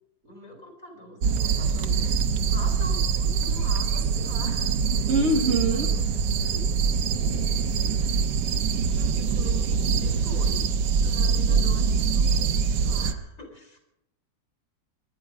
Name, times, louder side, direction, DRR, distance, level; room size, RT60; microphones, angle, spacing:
voice 1, 0.3-2.0 2.5-6.7 7.2-8.0 8.7-10.7 11.0-13.8, left 1 dB, 50° left, 3 dB, 4.0 m, -44 dB
sound 1, 1.2-13.1, right 5 dB, 75° right, 1.6 m, -24 dB
voice 2, 5.1-5.9, right 2 dB, 45° right, 3 dB, 1.2 m, -23 dB
25.5 x 10.5 x 5.0 m, 0.84 s
omnidirectional pair, 2.0 m